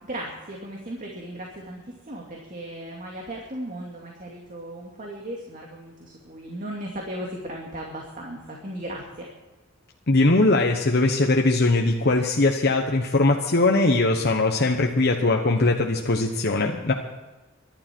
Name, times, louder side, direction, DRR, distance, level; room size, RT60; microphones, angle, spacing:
voice 1, 0.0-9.3, right 1 dB, 40° right, -1 dB, 2.4 m, -36 dB
voice 2, 10.1-16.9, left 2 dB, 55° left, 1 dB, 1.1 m, -21 dB
23.5 x 11.5 x 4.6 m, 1.1 s
head